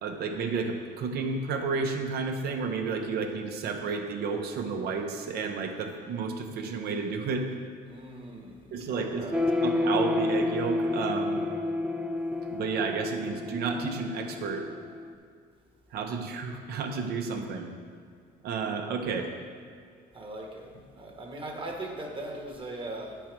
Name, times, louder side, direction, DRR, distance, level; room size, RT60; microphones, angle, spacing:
voice 1, 0.0-7.5 8.7-9.3 9.6-11.4 12.5-14.7 15.9-17.7 18.4-19.3, right 4 dB, 70° right, 4 dB, 1.0 m, -31 dB
voice 2, 7.9-9.5 20.1-23.2, right 1 dB, 30° right, 1 dB, 1.3 m, -40 dB
sound 1, 9.3-15.1, left 2 dB, 5° right, 0.4 m, -29 dB
8.8 x 4.6 x 6.1 m, 2.1 s
cardioid pair, 110°, 17 cm